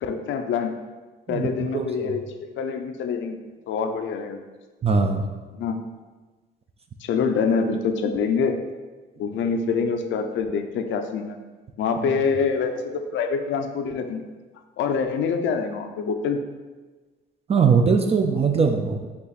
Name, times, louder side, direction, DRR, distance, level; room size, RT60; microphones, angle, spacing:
voice 1, 0.0-0.7 1.3-3.4 3.7-4.4 5.6-5.8 7.0-8.6 9.2-11.4 11.8-14.3 14.8-16.4, left 5 dB, 70° left, 6 dB, 0.5 m, -25 dB
voice 2, 1.3-2.2 4.8-5.2 12.0-12.1 17.5-19.1, right 5 dB, 30° right, 5 dB, 0.4 m, -21 dB
5.4 x 2.4 x 4.1 m, 1.3 s
cardioid pair, 90°, 20 cm